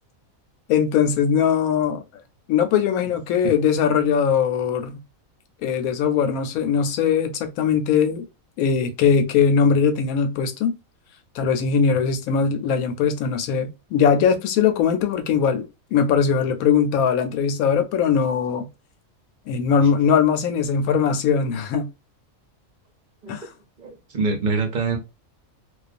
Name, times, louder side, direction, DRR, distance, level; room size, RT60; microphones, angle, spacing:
voice 1, 0.7-2.0 2.5-5.0 5.6-8.3 8.6-10.7 11.3-15.7 15.9-18.7 19.5-21.9 23.3-23.4, left 7 dB, 90° left, 1.0 m, -20 dB
voice 2, 23.8-25.0, right 4 dB, 45° right, 0.7 m, -24 dB
2.4 x 2.3 x 2.4 m
omnidirectional pair, 1.4 m